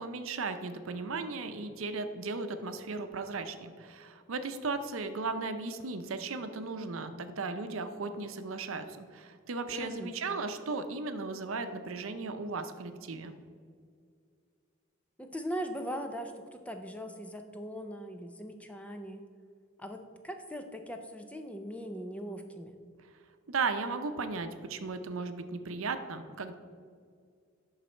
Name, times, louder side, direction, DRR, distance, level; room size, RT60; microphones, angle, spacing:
voice 1, 0.0-13.3 23.5-26.5, right 4 dB, 80° right, 9 dB, 0.6 m, -36 dB
voice 2, 9.7-10.1 15.2-19.2 19.8-22.8, equal, 5° left, 5 dB, 0.4 m, -40 dB
11.5 x 4.0 x 4.4 m, 2.2 s
head